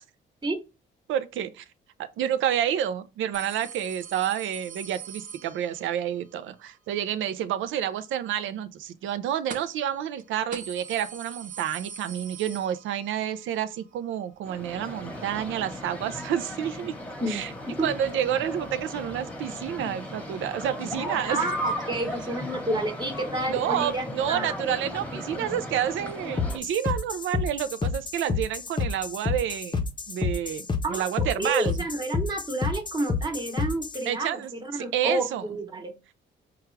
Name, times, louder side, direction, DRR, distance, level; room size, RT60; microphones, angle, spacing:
voice 1, 1.1-1.6 2.0-17.0 17.3-17.5 17.8-21.5 23.5-31.8 34.1-35.4, right 10 dB, 80° right, 0.5 m, -29 dB
sound 1, 3.3-6.0 9.5-9.9 10.2-10.3 10.5-13.2 13.6-13.7 14.7-14.8, right 7 dB, 40° right, 0.8 m, -42 dB
sound 2, 14.4-26.6, left 1 dB, 5° left, 1.0 m, -36 dB
voice 2, 17.2-17.9 21.3-24.0 24.3-24.5 30.8-31.0 31.4-36.1, right 2 dB, 20° right, 1.0 m, -30 dB
sound 3, 26.4-34.0, left 4 dB, 25° left, 0.7 m, -29 dB
4.7 x 2.3 x 3.2 m
cardioid pair, 90°, 20 cm